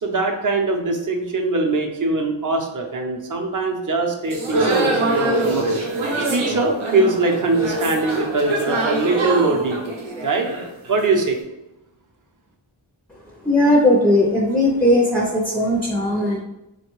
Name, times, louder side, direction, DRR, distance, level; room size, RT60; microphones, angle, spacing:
voice 1, 0.0-5.7 6.2-10.0 10.2-10.5 10.9-11.4, right 3 dB, 45° right, 3 dB, 0.6 m, -22 dB
sound 1, 4.3-11.2, right 2 dB, 90° right, 0.7 m, -24 dB
voice 2, 13.4-16.4, left 1 dB, 5° left, -2 dB, 0.4 m, -17 dB
3.5 x 2.2 x 3.0 m, 0.93 s
wide cardioid pair, 70°, 47 cm